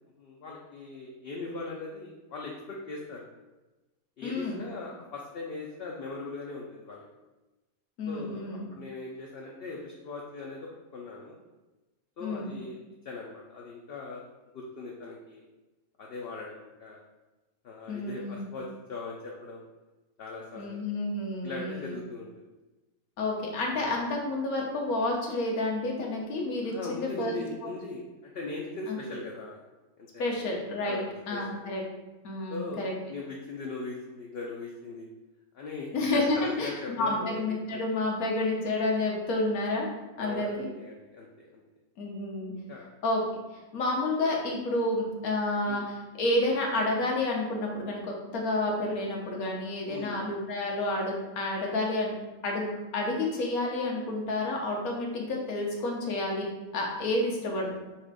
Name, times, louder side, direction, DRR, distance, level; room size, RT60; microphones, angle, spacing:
voice 1, 0.2-3.2 4.2-7.0 8.1-11.4 12.2-12.8 13.0-14.2 14.5-15.4 16.0-17.0 17.6-19.6 20.2-20.8 21.4-22.3 26.6-29.6 30.0-30.4 30.9-31.6 32.5-35.1 35.5-37.8 40.2-41.6 42.7-42.9 45.7-45.8 49.9-50.3, left 3 dB, 60° left, -2 dB, 0.6 m, -40 dB
voice 2, 4.2-4.6 8.0-8.6 12.2-12.6 17.9-18.4 20.6-22.0 23.2-27.7 28.9-29.0 30.2-31.0 31.3-31.8 32.2-32.9 35.9-39.9 40.2-40.7 42.0-42.5 43.0-43.2 43.7-52.1 52.4-52.7 52.9-56.5 56.7-57.8, left 2 dB, 90° left, 0 dB, 1.4 m, -30 dB
4.2 x 2.5 x 4.7 m, 1.1 s
omnidirectional pair, 1.5 m